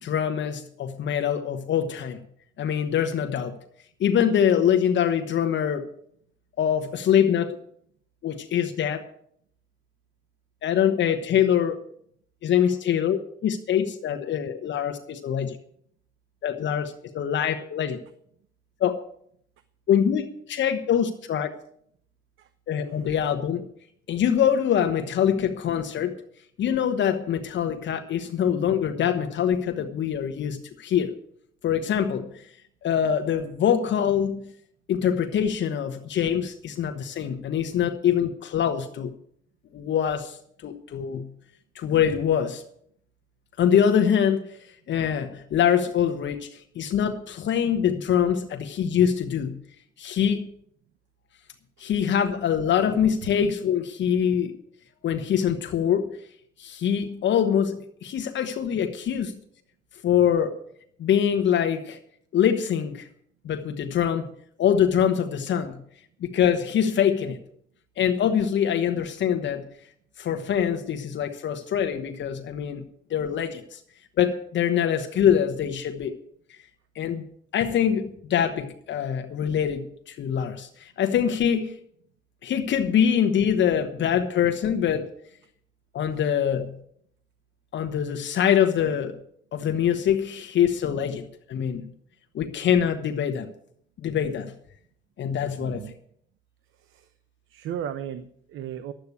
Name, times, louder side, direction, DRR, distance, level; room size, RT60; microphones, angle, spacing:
voice 1, 0.0-2.2 2.6-3.5 4.0-5.9 6.6-7.6 8.2-9.0 10.6-11.8 12.4-15.6 16.4-18.0 18.8-19.0 19.9-21.5 22.7-23.6 24.1-26.2 26.6-31.1 31.6-32.5 32.8-34.5 34.9-39.1 39.7-41.3 41.7-42.6 43.6-49.6 50.0-50.5 51.8-54.5 55.0-56.2 56.6-59.4 60.0-60.6 61.0-62.0 62.3-63.1 63.4-64.3 64.6-65.8 66.2-67.4 68.0-69.6 70.2-72.8 73.1-73.8 74.2-76.1 76.9-77.2 77.5-81.8 82.4-85.1 85.9-86.7 87.7-89.2 89.5-91.8 92.3-93.5 94.0-94.5 95.2-95.8, left 8 dB, 65° left, 7 dB, 1.1 m, -24 dB
voice 2, 95.6-95.9 96.8-97.1 97.5-98.9, right 9 dB, 80° right, 11 dB, 0.8 m, -36 dB
11.5 x 8.3 x 8.2 m, 0.67 s
cardioid pair, 90°, 20 cm